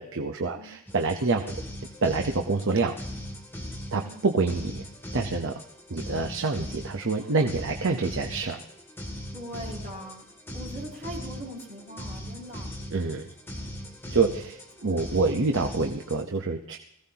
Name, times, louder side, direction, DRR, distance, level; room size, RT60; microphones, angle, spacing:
voice 1, 0.0-1.6 2.0-2.9 3.9-4.9 5.1-5.6 5.9-8.6 12.9-13.2 14.1-16.8, right 3 dB, 60° right, 3 dB, 0.9 m, -27 dB
sound 1, 0.9-16.2, equal, 10° left, 2.5 m, -39 dB
voice 2, 1.2-1.5 4.0-4.3 7.2-7.3 9.3-10.2 10.5-12.8, equal, 40° right, -5 dB, 6.1 m, -41 dB
21.0 x 15.5 x 2.9 m, 0.76 s
head